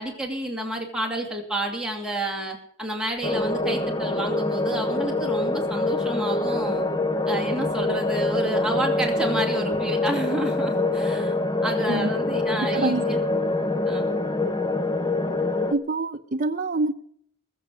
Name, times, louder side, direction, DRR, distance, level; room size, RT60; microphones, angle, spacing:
voice 1, 0.0-6.9 7.3-11.3 11.6-13.2 13.9-14.1, right 1 dB, 5° right, 0 dB, 2.7 m, -30 dB
sound 1, 3.2-15.7, left 2 dB, 20° left, 0.8 m, -25 dB
voice 2, 12.7-13.0 15.7-16.9, right 3 dB, 40° right, 3 dB, 0.7 m, -25 dB
20.5 x 7.8 x 6.3 m, 0.66 s
head